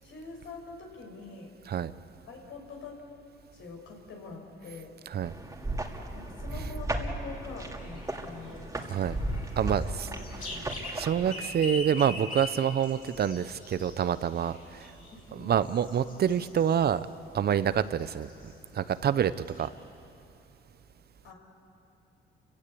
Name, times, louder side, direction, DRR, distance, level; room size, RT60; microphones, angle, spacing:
voice 1, 0.0-1.5 2.3-3.0 3.5-4.9 6.1-8.7 9.8-10.2 10.5-10.7 15.1-15.5 21.2-21.3, left 4 dB, 80° left, 1 dB, 5.3 m, -44 dB
sound 1, 5.2-11.3, right 1 dB, 15° right, 2.5 m, -35 dB
sound 2, 7.8-17.1 17.4-18.6 19.0-19.1 19.3-19.7, left 1 dB, 40° left, 6.4 m, -43 dB
voice 2, 9.6-10.1 10.6-14.9 15.3-17.1 17.3-19.7, right 8 dB, 55° right, 14 dB, 0.8 m, -27 dB
29.0 x 17.0 x 8.6 m, 2.9 s
cardioid pair, 90°, 20 cm